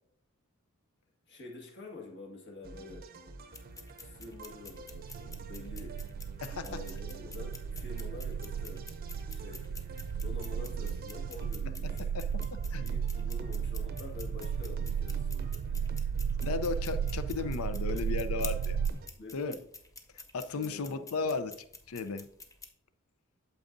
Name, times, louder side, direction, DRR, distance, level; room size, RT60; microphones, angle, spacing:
voice 1, 1.3-3.1 4.0-6.0 6.6-8.9 9.3-9.7 10.2-12.1 12.8-15.9 19.1-19.6 20.5-21.3, left 3 dB, 55° left, 1.7 m, -47 dB
sound 1, 2.6-19.1, right 2 dB, 45° right, 0.6 m, -48 dB
sound 2, 3.5-22.7, left 3 dB, 15° left, 0.6 m, -51 dB
sound 3, 4.5-18.9, right 7 dB, 85° right, 0.3 m, -35 dB
voice 2, 12.0-12.8 16.4-18.8 19.3-19.5 20.1-22.3, left 4 dB, 80° left, 0.5 m, -35 dB
8.8 x 7.2 x 2.6 m
head